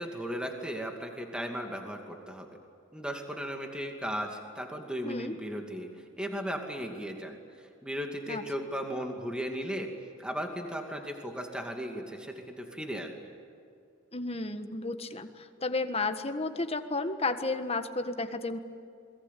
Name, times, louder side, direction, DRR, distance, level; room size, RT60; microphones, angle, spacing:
voice 1, 0.0-2.5 2.9-5.9 6.2-7.4 7.8-9.9 10.2-13.3, equal, 5° right, 3 dB, 2.5 m, -36 dB
voice 2, 14.1-18.6, left 3 dB, 30° left, 8 dB, 1.5 m, -32 dB
28.0 x 22.5 x 8.5 m, 2.5 s
head